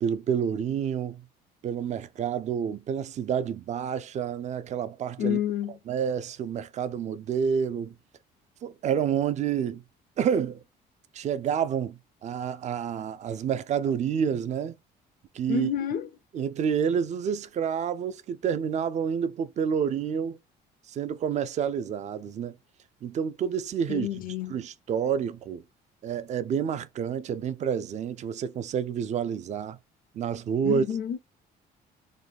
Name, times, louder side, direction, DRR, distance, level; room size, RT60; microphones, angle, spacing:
voice 1, 0.0-1.2 1.6-5.4 5.9-7.9 8.6-9.8 10.2-10.6 11.1-14.7 15.3-15.7 16.3-20.4 20.9-22.6 23.0-24.2 24.5-25.6 26.0-29.8 30.1-30.8, right 7 dB, 45° right, 0.4 m, -29 dB
voice 2, 5.2-5.7 15.5-16.1 23.9-24.6 30.6-31.2, left 10 dB, 55° left, 0.5 m, -29 dB
3.8 x 2.2 x 3.4 m
cardioid pair, 110°, 17 cm